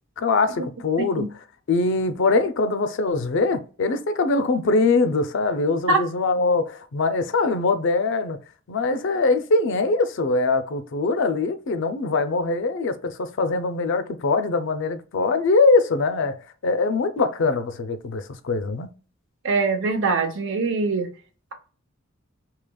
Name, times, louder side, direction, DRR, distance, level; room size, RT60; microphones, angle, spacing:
voice 1, 0.2-1.3 1.7-8.4 8.7-16.4 16.6-18.9, left 3 dB, 60° left, 0.5 m, -22 dB
voice 2, 19.4-21.1, right 3 dB, 65° right, 0.7 m, -22 dB
4.9 x 2.8 x 2.2 m
head